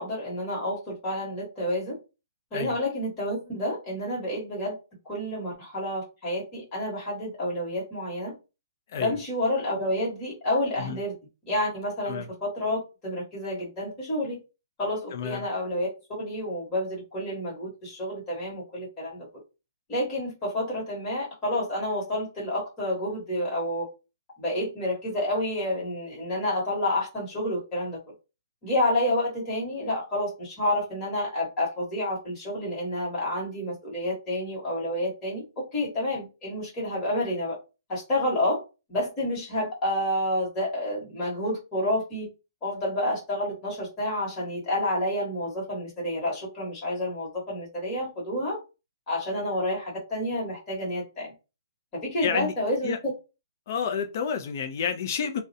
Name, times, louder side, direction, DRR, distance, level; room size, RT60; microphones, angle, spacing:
voice 1, 0.0-2.0 2.5-4.8 5.0-8.4 9.0-11.1 11.5-14.4 14.8-15.9 16.2-19.3 19.9-23.9 24.4-28.0 28.6-37.6 37.9-38.6 38.9-42.3 42.6-48.6 49.1-51.3 51.9-52.9, left 1 dB, 15° left, 1.1 m, -29 dB
voice 2, 15.1-15.4 52.2-52.5 52.8-53.0 53.7-55.4, left 7 dB, 40° left, 0.4 m, -30 dB
2.4 x 2.1 x 2.6 m
hypercardioid pair, 170°, 2 cm